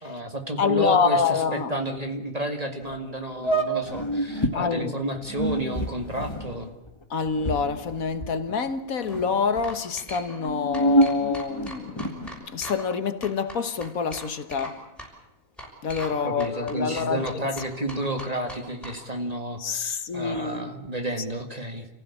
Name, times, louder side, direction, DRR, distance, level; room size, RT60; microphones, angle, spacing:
voice 1, 0.0-6.7 16.1-21.9, right 1 dB, 30° right, 2.0 m, -31 dB
voice 2, 0.6-1.7 4.6-5.0 7.1-14.8 15.8-17.3 19.6-20.7, left 5 dB, 80° left, 1.8 m, -27 dB
sound 1, 2.8-3.0 3.4-4.6 5.2-8.7 9.0-9.7 10.3-12.3, right 1 dB, 20° left, 2.0 m, -27 dB
sound 2, 8.9-9.2 9.6-10.5 10.7-13.0 13.2-14.7 15.0-15.1 15.6-16.1 16.4-19.0, equal, ahead, 6.4 m, -40 dB
29.0 x 15.5 x 8.5 m
omnidirectional pair, 1.4 m